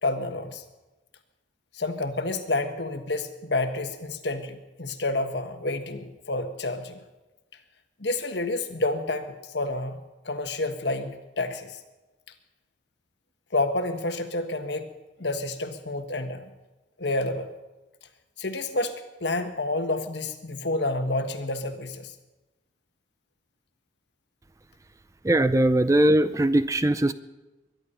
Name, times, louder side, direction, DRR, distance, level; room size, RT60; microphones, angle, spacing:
voice 1, 0.0-0.6 1.7-7.0 8.0-10.0 10.2-11.8 13.5-14.9 15.2-16.5 17.0-17.5 18.4-18.9 19.2-22.1, left 2 dB, 70° left, 7 dB, 1.4 m, -29 dB
voice 2, 25.2-27.1, right 1 dB, 15° right, 13 dB, 0.4 m, -20 dB
22.5 x 11.0 x 5.6 m, 1.1 s
head